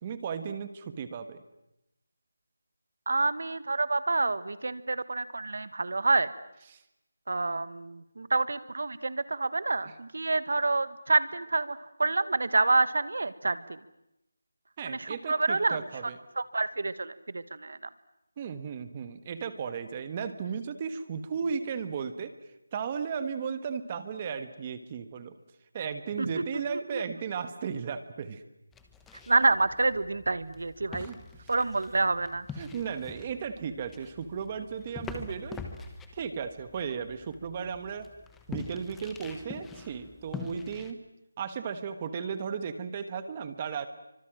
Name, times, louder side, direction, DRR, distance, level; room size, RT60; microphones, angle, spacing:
voice 1, 0.0-1.4 6.7-6.8 9.8-9.9 14.8-16.1 18.4-22.3 22.7-25.3 25.7-28.4 31.0-31.2 32.6-35.6 36.1-38.1 38.5-41.0 41.4-43.9, right 6 dB, 20° right, 11 dB, 1.3 m, -35 dB
voice 2, 3.1-6.3 7.3-13.8 14.8-15.8 16.3-17.8 26.2-27.0 29.3-31.1 31.5-32.5, right 3 dB, 60° right, 14 dB, 1.7 m, -28 dB
sound 1, 28.7-40.9, left 5 dB, 5° left, 1.1 m, -45 dB
29.5 x 25.0 x 7.6 m, 0.85 s
figure-of-eight pair, 175°, 0 cm